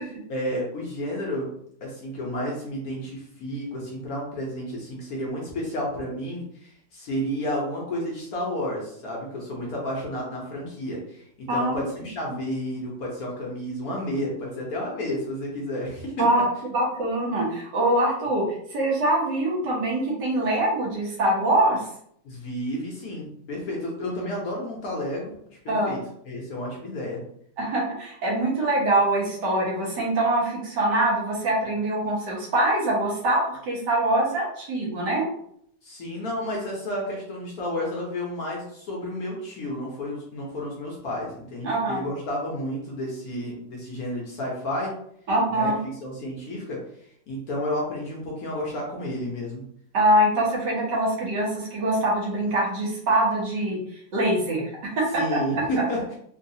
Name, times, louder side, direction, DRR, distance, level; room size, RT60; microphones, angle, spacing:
voice 1, 0.3-1.5 1.8-16.3 22.2-26.0 26.3-27.2 35.8-44.9 45.5-45.7 46.0-46.8 47.3-49.6 55.1-56.2, left 1 dB, 60° left, -2 dB, 1.1 m, -31 dB
voice 2, 11.5-11.8 16.2-21.9 25.7-26.0 27.6-35.2 41.6-42.0 45.3-45.8 49.9-53.8 54.1-55.6, right 1 dB, 70° right, -4 dB, 1.6 m, -24 dB
3.8 x 2.3 x 2.7 m, 0.68 s
omnidirectional pair, 2.0 m